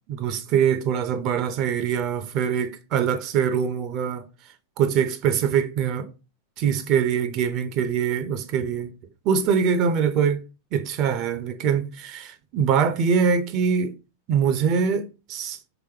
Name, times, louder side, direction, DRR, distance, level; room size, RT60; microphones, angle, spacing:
voice 1, 0.1-4.3 4.8-6.1 6.6-8.9 9.2-10.4 10.7-13.9 14.3-15.6, right 7 dB, 40° right, 0.4 m, -23 dB
3.1 x 2.9 x 3.2 m
figure-of-eight pair, 90°, 0 cm